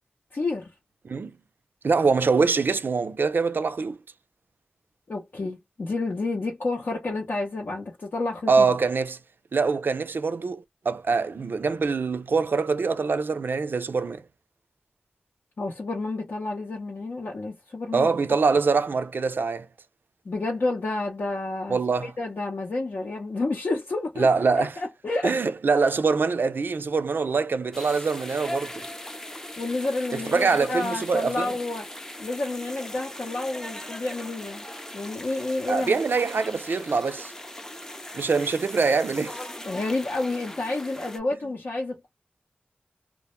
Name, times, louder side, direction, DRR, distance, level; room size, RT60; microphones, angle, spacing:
voice 1, 0.3-0.7 5.1-8.7 15.6-18.1 20.3-24.3 24.6-25.4 25.8-25.9 29.6-31.9 32.2-34.6 34.9-36.0 39.6-42.1, left 2 dB, 70° left, 0.6 m, -30 dB
voice 2, 1.8-4.0 8.5-9.2 9.5-14.2 17.9-19.7 21.7-22.1 24.2-24.7 25.2-28.8 30.1-31.5 35.7-37.3 38.1-39.4, right 4 dB, 70° right, 0.4 m, -24 dB
sound 1, 27.7-41.2, left 1 dB, 15° left, 0.4 m, -39 dB
2.1 x 2.1 x 2.9 m
wide cardioid pair, 60°, 4 cm